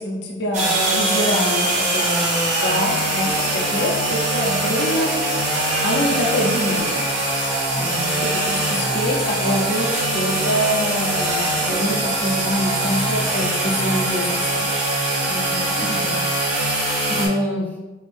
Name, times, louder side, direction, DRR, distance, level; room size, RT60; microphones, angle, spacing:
voice 1, 0.0-2.2 2.5-5.2 5.8-6.9 8.2-14.7, equal, 65° left, 0 dB, 0.6 m, -25 dB
sound 1, 0.5-17.3, right 1 dB, 40° right, 0.9 m, -22 dB
sound 2, 3.0-7.6, right 3 dB, 85° right, 0.6 m, -36 dB
sound 3, 3.2-3.8 5.8-5.9 6.4-7.3 8.9-9.2 11.7-12.3 13.3-14.0 14.7-14.8 15.1-15.2 15.7-16.4 16.9-17.0, left 1 dB, 55° right, 1.2 m, -40 dB
voice 2, 7.8-8.2 15.3-16.2 17.1-17.7, left 1 dB, 10° left, -5 dB, 0.6 m, -27 dB
4.8 x 2.0 x 3.4 m, 1.1 s
head